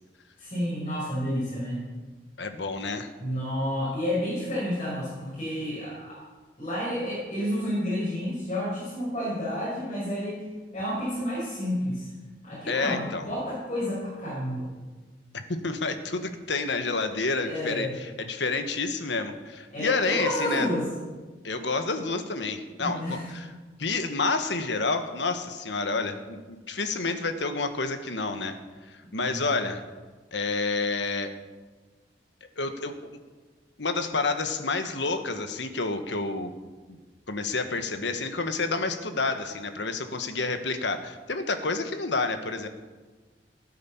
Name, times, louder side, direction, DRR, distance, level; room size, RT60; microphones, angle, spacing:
voice 1, 0.4-1.8 3.2-6.2 6.6-10.5 10.7-12.1 12.4-14.7 17.4-18.0 19.7-20.8 22.8-23.3 29.2-29.4, equal, 35° left, -8 dB, 5.8 m, -30 dB
voice 2, 2.4-3.1 12.7-13.3 15.3-20.7 21.4-23.5 23.8-28.6 28.8-29.8 30.3-31.3 32.6-33.2 33.8-36.5 36.9-37.0 37.3-42.7, left 3 dB, 75° left, 8 dB, 1.4 m, -29 dB
16.5 x 9.5 x 7.2 m, 1.3 s
head